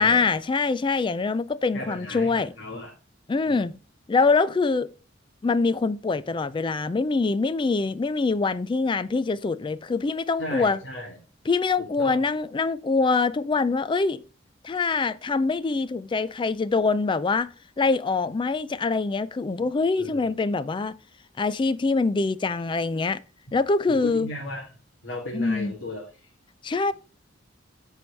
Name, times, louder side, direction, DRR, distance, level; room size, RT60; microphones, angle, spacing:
voice 1, 0.0-2.5 3.3-3.7 4.1-4.9 5.4-10.8 11.5-14.2 14.6-20.9 21.4-23.2 23.5-24.3 25.3-25.7 26.6-26.9, left 4 dB, 25° left, 0.3 m, -24 dB
voice 2, 1.7-2.9 3.5-3.7 10.4-11.2 11.8-12.2 20.0-20.3 23.9-24.7 25.0-26.3, left 1 dB, 65° left, 2.2 m, -36 dB
14.0 x 4.6 x 3.2 m
head